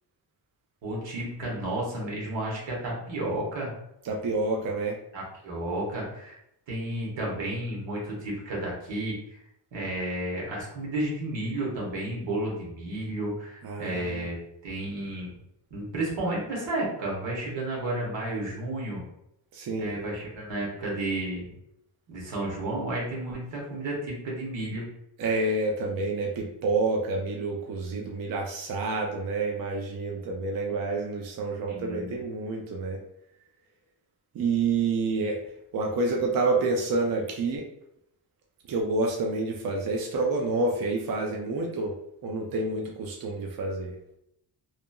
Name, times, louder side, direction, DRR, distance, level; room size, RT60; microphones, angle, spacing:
voice 1, 0.8-3.7 5.1-6.4 6.7-9.2 9.7-14.4 14.6-15.4 15.7-19.0 19.8-21.5 22.1-24.9 31.7-32.2, right 1 dB, 85° right, -3 dB, 1.1 m, -32 dB
voice 2, 4.0-5.0 13.6-14.2 19.5-20.0 25.2-33.0 34.3-35.4 35.7-37.7 38.7-42.0 42.2-43.9, right 3 dB, 55° right, 0 dB, 0.5 m, -28 dB
2.8 x 2.4 x 2.3 m, 0.78 s
wide cardioid pair, 135°, 43 cm